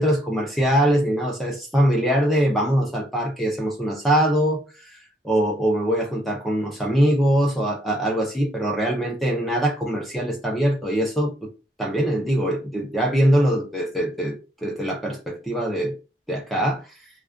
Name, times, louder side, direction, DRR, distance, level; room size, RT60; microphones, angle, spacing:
voice 1, 0.0-4.6 4.9-5.0 5.2-11.5 11.8-16.0 16.3-16.8, equal, ahead, 0.5 m, -22 dB
2.3 x 2.3 x 2.3 m
head